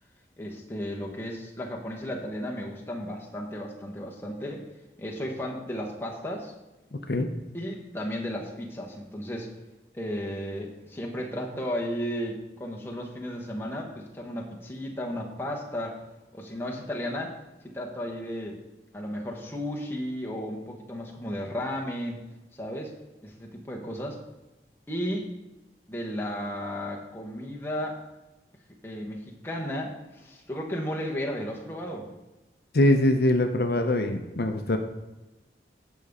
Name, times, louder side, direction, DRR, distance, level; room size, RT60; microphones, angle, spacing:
voice 1, 0.4-4.7 5.0-6.5 7.5-9.5 9.9-16.0 16.3-17.4 17.6-18.6 18.9-22.2 22.6-22.9 23.2-24.2 24.9-25.3 25.9-28.0 28.8-32.1, equal, 15° left, -2 dB, 1.1 m, -34 dB
voice 2, 6.9-7.3 32.7-34.8, left 1 dB, 60° left, 6 dB, 0.6 m, -23 dB
15.0 x 5.4 x 3.6 m, 1.0 s
head